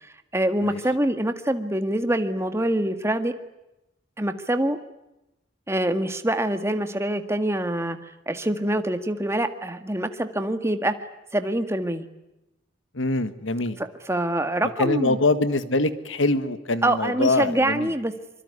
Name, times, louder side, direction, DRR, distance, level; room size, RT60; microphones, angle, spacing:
voice 1, 0.3-3.3 4.2-4.8 5.7-8.0 8.3-10.9 11.3-12.1 13.8-15.2 16.8-18.1, right 1 dB, 15° right, 8 dB, 1.8 m, -25 dB
voice 2, 12.9-13.8 14.8-17.9, left 2 dB, 85° left, 12 dB, 1.8 m, -24 dB
25.0 x 24.5 x 9.7 m, 0.93 s
head